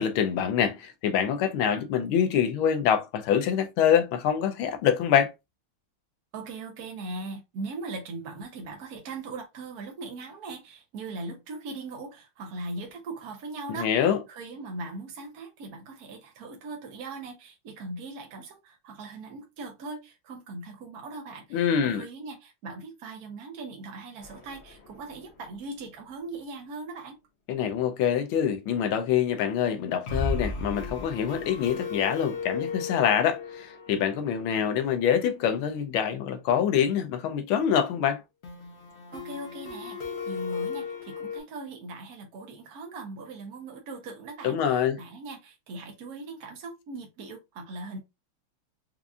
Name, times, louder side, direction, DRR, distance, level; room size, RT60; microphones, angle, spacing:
voice 1, 0.0-5.3 13.7-14.2 21.5-22.0 27.5-38.2 44.4-45.0, left 8 dB, 85° left, 1.4 m, -25 dB
voice 2, 6.3-27.2 39.1-48.0, right 3 dB, 60° right, 1.0 m, -40 dB
sound 1, 24.2-25.4 25.7-25.8 26.1-26.2 30.1-35.7 38.4-41.4, left 4 dB, 55° left, 0.7 m, -36 dB
4.7 x 2.5 x 2.4 m
omnidirectional pair, 2.3 m